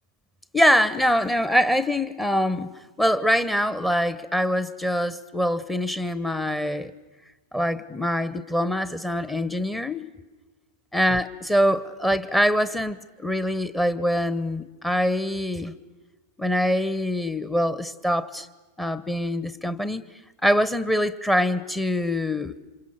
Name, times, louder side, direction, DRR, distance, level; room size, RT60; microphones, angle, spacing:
voice 1, 0.5-6.9 7.5-10.1 10.9-15.7 16.4-18.5 18.8-20.1 20.4-22.5, equal, 5° left, 1.0 m, -24 dB
28.0 x 26.0 x 7.0 m
figure-of-eight pair, 90°, 0 cm